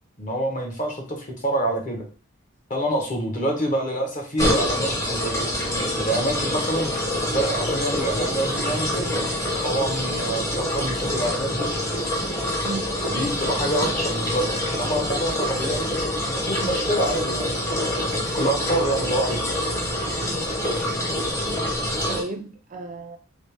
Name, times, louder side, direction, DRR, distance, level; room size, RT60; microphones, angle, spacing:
voice 1, 0.2-2.1 2.7-5.4 6.0-6.9 7.3-9.1 9.6-11.7 13.0-15.9 16.3-19.4, right 1 dB, 40° left, 0.9 m, -26 dB
sound 1, 4.4-22.2, left 1 dB, 15° left, 0.8 m, -26 dB
voice 2, 12.6-13.0 20.1-20.9 22.0-23.2, right 3 dB, 40° right, 0.4 m, -35 dB
3.2 x 2.9 x 3.2 m
head